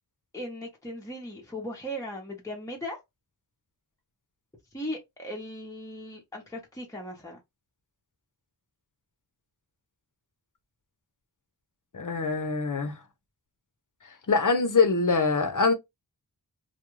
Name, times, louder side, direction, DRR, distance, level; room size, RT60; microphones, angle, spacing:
voice 1, 0.3-3.0 4.7-7.4, equal, 10° left, 0.7 m, -38 dB
voice 2, 11.9-12.9 14.0-15.7, left 4 dB, 50° left, 0.7 m, -24 dB
2.3 x 2.3 x 3.0 m
wide cardioid pair, 70°, 40 cm